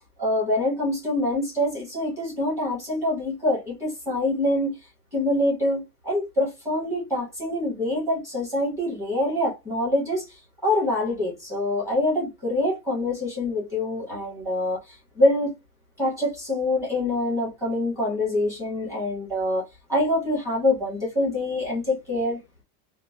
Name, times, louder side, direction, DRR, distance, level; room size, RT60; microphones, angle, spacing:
voice 1, 0.2-4.7 5.1-15.5 16.0-19.6 19.9-22.4, left 1 dB, 5° right, 1.6 m, -25 dB
3.7 x 2.3 x 2.4 m
supercardioid pair, 175°, 46 cm